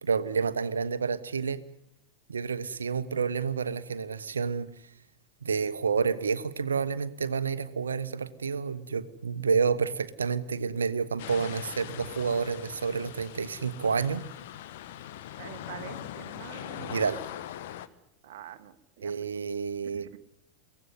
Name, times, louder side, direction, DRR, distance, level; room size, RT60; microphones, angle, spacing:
voice 1, 0.0-1.6 2.3-4.7 5.4-14.2 16.8-17.2 19.0-20.1, right 5 dB, 70° right, 14 dB, 1.2 m, -29 dB
sound 1, 11.2-17.9, left 12 dB, 55° left, 1.2 m, -41 dB
voice 2, 15.4-17.0 18.2-19.4 19.8-20.2, right 11 dB, 50° right, 8 dB, 1.5 m, -46 dB
23.5 x 17.0 x 9.5 m, 0.80 s
figure-of-eight pair, 90°, 0 cm